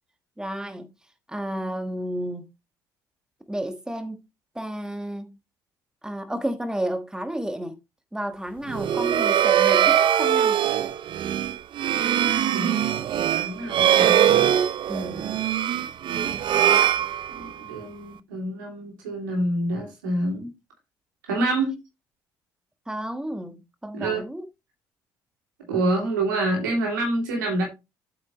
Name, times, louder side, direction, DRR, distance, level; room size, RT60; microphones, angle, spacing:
voice 1, 0.4-0.9 1.3-2.4 3.5-4.2 4.5-5.4 6.0-7.8 8.1-10.6 14.9-15.3 22.9-24.4, right 1 dB, 5° right, 1.4 m, -31 dB
sound 1, 8.7-17.7, right 10 dB, 55° right, 0.5 m, -22 dB
voice 2, 13.3-14.2 16.1-16.6 17.3-20.5 21.2-21.8 23.9-24.2 25.7-27.6, right 2 dB, 85° right, 3.0 m, -27 dB
8.1 x 6.1 x 3.1 m
hypercardioid pair, 50°, 10 cm